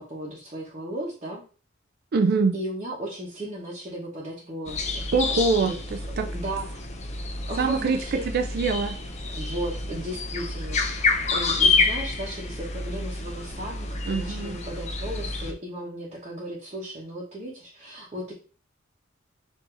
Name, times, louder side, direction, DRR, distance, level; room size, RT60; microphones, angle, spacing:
voice 1, 0.1-1.4 2.5-5.0 5.3-5.7 6.2-6.9 7.5-8.3 9.4-18.3, right 1 dB, 35° right, -5 dB, 1.0 m, -36 dB
voice 2, 2.1-2.6 5.1-5.7 6.2-6.3 7.6-9.0 14.1-14.6, right 4 dB, 50° right, 6 dB, 0.4 m, -24 dB
sound 1, 4.7-15.5, left 3 dB, 35° left, 0.6 m, -28 dB
4.7 x 2.7 x 3.8 m, 0.37 s
head